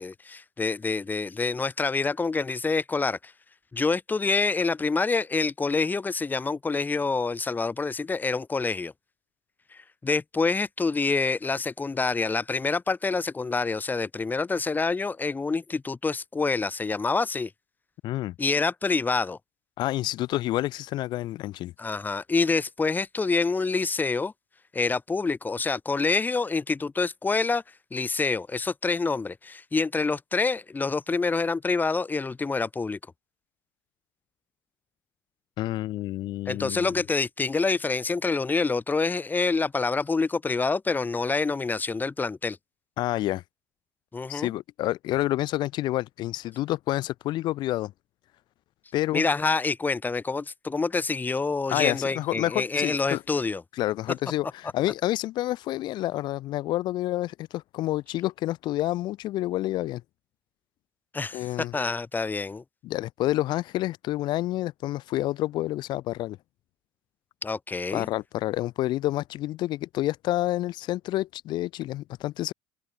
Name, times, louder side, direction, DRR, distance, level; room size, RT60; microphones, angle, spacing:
voice 1, 0.0-3.3 3.7-8.9 9.7-17.5 18.4-19.4 21.8-24.3 24.7-27.6 27.9-33.0 36.4-42.6 44.1-44.5 49.1-53.6 61.1-62.6 67.4-68.1, left 4 dB, 20° left, 5.0 m, -27 dB
voice 2, 18.0-18.3 19.8-21.7 35.6-36.9 43.0-43.4 44.3-47.9 48.9-49.3 51.7-53.2 53.8-60.0 61.3-61.7 62.8-66.4 67.9-72.5, left 15 dB, 60° left, 4.3 m, -28 dB
open air
hypercardioid pair, 80°, 9 cm